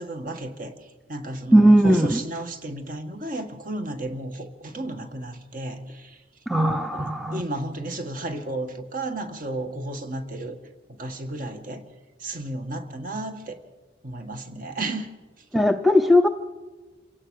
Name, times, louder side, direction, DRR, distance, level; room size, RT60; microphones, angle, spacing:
voice 1, 0.0-6.2 6.8-10.6 10.9-11.8 12.2-13.6 14.0-15.1, right 2 dB, 40° right, 7 dB, 1.8 m, -33 dB
voice 2, 1.5-2.2 6.5-7.4 15.5-16.3, equal, ahead, 8 dB, 0.6 m, -18 dB
27.5 x 17.0 x 6.5 m, 1.2 s
head